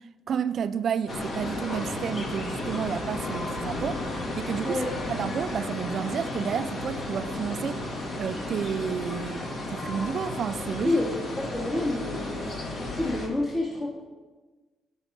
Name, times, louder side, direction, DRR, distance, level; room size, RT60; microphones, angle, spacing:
voice 1, 0.3-4.8 5.1-7.8 8.2-11.0, right 7 dB, 60° right, 0.4 m, -31 dB
sound 1, 1.1-13.3, left 2 dB, 55° left, 1.9 m, -33 dB
voice 2, 10.8-12.4 12.8-13.9, left 2 dB, 25° left, 1.8 m, -28 dB
7.1 x 5.4 x 7.4 m
cardioid pair, 90°, 0 cm